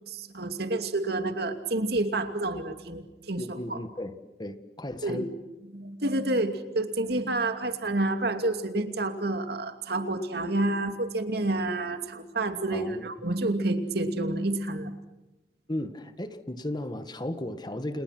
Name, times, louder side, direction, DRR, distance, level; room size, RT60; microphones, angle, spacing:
voice 1, 0.1-3.8 5.0-5.2 5.7-14.9, right 2 dB, 65° right, 7 dB, 2.7 m, -29 dB
voice 2, 3.4-4.1 4.4-5.3 12.7-13.0 15.7-18.0, left 1 dB, 25° left, 10 dB, 1.6 m, -35 dB
29.5 x 29.5 x 6.1 m, 1.0 s
head